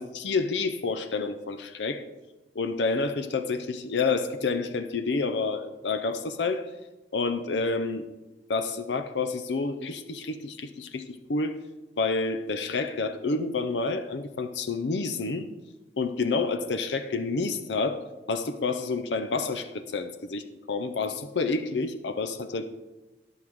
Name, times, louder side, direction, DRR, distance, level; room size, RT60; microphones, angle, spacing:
voice 1, 0.0-2.0 2.5-6.7 7.1-8.0 8.5-11.6 12.0-15.5 16.0-22.7, left 4 dB, 85° left, 9 dB, 0.6 m, -29 dB
18.5 x 6.4 x 3.6 m, 1.1 s
head